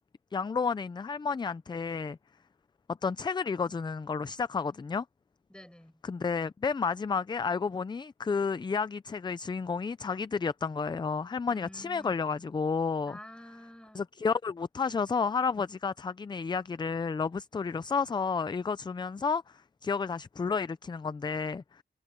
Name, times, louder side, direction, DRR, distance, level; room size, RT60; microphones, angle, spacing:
voice 1, 0.3-2.2 3.0-5.0 6.0-13.1 14.0-19.4 19.8-21.8, left 5 dB, 25° left, 0.3 m, -31 dB
voice 2, 5.5-6.0 11.5-12.3 13.1-14.0, equal, 5° left, 7.7 m, -49 dB
wide cardioid pair, 160°, 18 cm